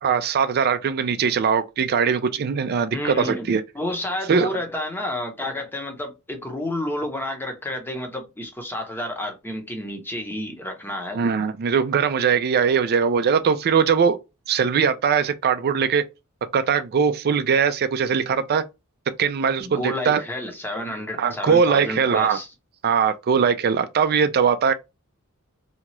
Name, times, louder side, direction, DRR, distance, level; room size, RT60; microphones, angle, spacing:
voice 1, 0.0-3.6 4.3-4.5 11.1-14.2 14.5-16.0 16.5-18.6 19.2-20.2 21.2-22.4 22.8-24.7, right 6 dB, 45° right, 0.4 m, -21 dB
voice 2, 2.9-3.5 3.7-11.2 19.6-22.5, left 1 dB, 10° left, 0.7 m, -30 dB
2.8 x 2.3 x 2.9 m
head